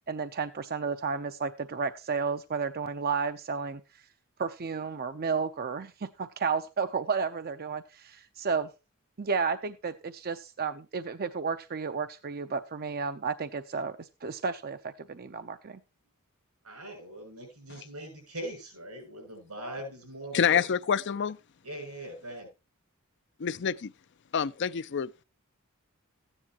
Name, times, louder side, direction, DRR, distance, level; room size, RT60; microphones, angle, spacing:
voice 1, 0.1-3.8 4.4-8.7 9.2-15.8, right 5 dB, 45° right, 0.6 m, -32 dB
voice 2, 16.6-20.6 21.6-22.5, right 1 dB, 90° right, 6.7 m, -41 dB
voice 3, 20.3-21.4 23.4-23.9 24.3-25.2, left 7 dB, 50° left, 0.5 m, -27 dB
14.5 x 9.9 x 2.9 m
head